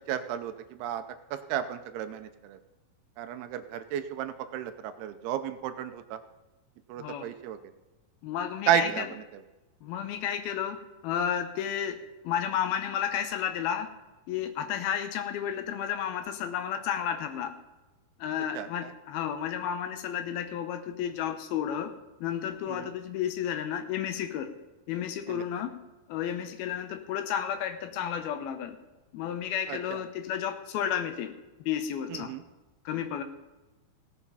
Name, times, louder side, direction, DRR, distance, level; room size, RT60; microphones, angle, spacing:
voice 1, 0.1-0.5 0.8-1.0 1.5-2.3 3.2-6.2 6.9-7.6 8.7-9.0 18.6-18.7 22.7-22.9 25.3-25.4 29.7-29.8 32.1-32.4, right 10 dB, 80° right, 9 dB, 2.7 m, -31 dB
voice 2, 8.2-9.1 9.8-10.8 11.0-12.0 12.2-13.9 14.3-17.5 18.2-22.0 22.2-24.5 24.9-25.8 26.1-28.8 29.1-31.3 31.6-32.3 32.9-33.2, left 9 dB, 75° left, 9 dB, 2.6 m, -32 dB
17.5 x 7.2 x 5.5 m, 1.1 s
omnidirectional pair, 4.8 m